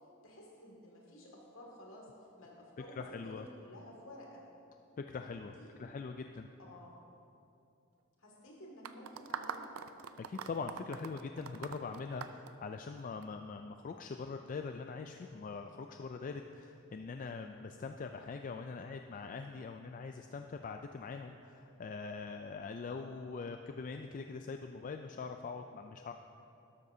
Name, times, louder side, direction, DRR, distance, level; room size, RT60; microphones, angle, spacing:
voice 1, 0.2-4.5 5.4-5.7 6.6-7.0 8.2-9.7, equal, 65° left, -2 dB, 2.1 m, -53 dB
voice 2, 2.8-3.5 5.0-5.5 5.8-6.5 10.2-26.1, left 4 dB, 40° left, 5 dB, 0.3 m, -43 dB
sound 1, 8.8-13.2, right 7 dB, 80° right, 0.5 m, -43 dB
12.5 x 12.0 x 2.7 m, 2.7 s
head